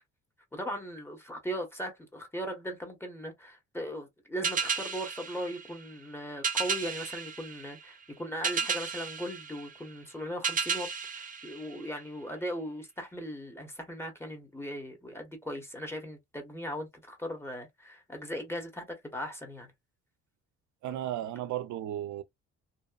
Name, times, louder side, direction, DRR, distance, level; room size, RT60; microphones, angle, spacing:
voice 1, 0.5-10.9 11.2-19.7, equal, 10° left, 1.1 m, -38 dB
sound 1, 4.4-12.3, right 5 dB, 25° right, 0.6 m, -34 dB
voice 2, 20.8-22.2, right 12 dB, 75° right, 0.5 m, -34 dB
2.8 x 2.1 x 2.3 m
cardioid pair, 90°, 30 cm